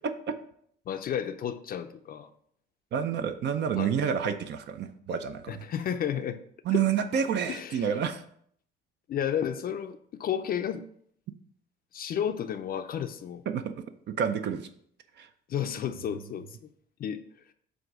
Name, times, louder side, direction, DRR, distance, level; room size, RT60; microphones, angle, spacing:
voice 1, 0.9-2.3 3.8-3.9 5.5-6.4 6.7-6.9 7.5-7.9 9.1-10.9 11.9-13.4 15.5-16.5 17.0-17.2, left 9 dB, 45° left, 0.4 m, -32 dB
voice 2, 2.9-5.6 6.7-8.2 13.5-13.8 14.2-14.7 15.2-15.3, right 8 dB, 60° right, 0.5 m, -29 dB
7.8 x 2.7 x 6.0 m
cardioid pair, 125°, 21 cm